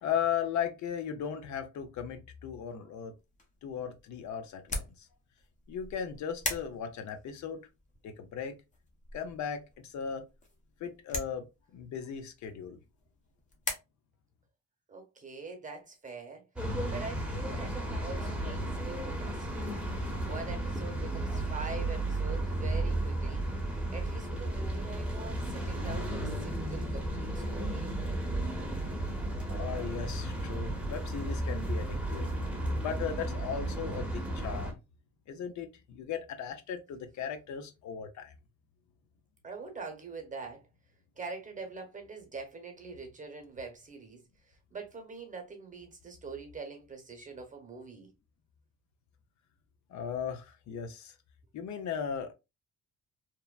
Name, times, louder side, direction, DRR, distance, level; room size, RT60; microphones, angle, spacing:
voice 1, 0.0-3.1 3.6-5.1 5.7-7.7 8.0-8.6 9.1-10.2 10.8-11.4 11.7-12.8 29.5-32.5 32.7-34.7 35.3-38.3 49.9-51.1 51.5-52.3, left 7 dB, 70° left, 0.6 m, -37 dB
sound 1, 3.2-13.7, left 2 dB, 25° left, 0.8 m, -42 dB
voice 2, 14.9-19.7 20.0-28.2 39.4-40.6 41.2-44.2 44.5-48.1, right 4 dB, 25° right, 1.0 m, -44 dB
sound 2, 16.6-34.7, right 1 dB, 5° right, 0.9 m, -34 dB
2.9 x 2.0 x 2.2 m
cardioid pair, 90°, 30 cm